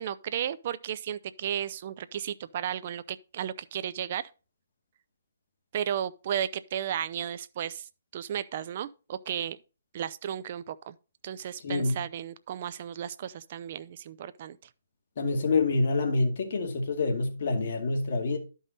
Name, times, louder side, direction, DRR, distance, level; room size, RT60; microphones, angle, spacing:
voice 1, 0.0-4.3 5.7-9.6 9.9-11.0 11.2-14.6, right 9 dB, 35° right, 0.6 m, -34 dB
voice 2, 11.6-12.0 15.2-18.4, left 3 dB, 45° left, 2.1 m, -27 dB
11.5 x 5.5 x 4.0 m
hypercardioid pair, 165°, 0 cm